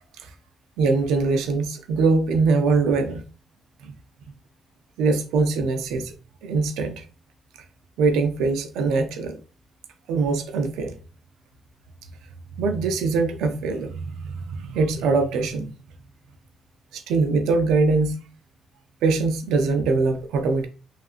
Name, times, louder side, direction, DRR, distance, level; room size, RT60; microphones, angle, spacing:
voice 1, 0.8-3.2 3.8-3.9 5.0-6.1 6.4-7.0 8.0-9.4 10.1-10.9 12.6-15.7 16.9-18.2 19.0-20.7, right 4 dB, 90° right, 0.5 m, -22 dB
3.0 x 2.6 x 2.4 m
cardioid pair, 90°, 0 cm